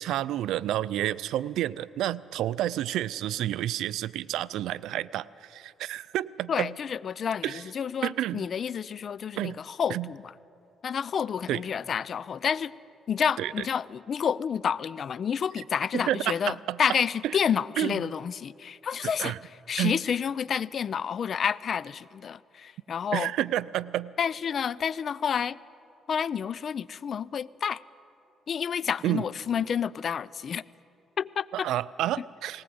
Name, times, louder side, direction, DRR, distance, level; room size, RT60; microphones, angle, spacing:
voice 1, 0.0-6.7 7.4-7.6 8.0-8.5 9.4-9.6 9.9-10.1 11.5-11.6 13.4-13.5 15.9-16.8 17.2-17.3 17.8-18.0 19.2-19.4 19.8-20.0 23.1-24.1 29.0-29.2 31.5-32.6, right 13 dB, 85° right, 18 dB, 0.4 m, -29 dB
voice 2, 6.5-10.3 10.8-12.7 13.1-19.3 19.7-23.3 24.2-25.6 26.1-27.8 28.5-30.6 31.2-31.7, left 7 dB, 55° left, 21 dB, 0.4 m, -29 dB
19.5 x 18.5 x 7.8 m, 2.7 s
cardioid pair, 90°, 0 cm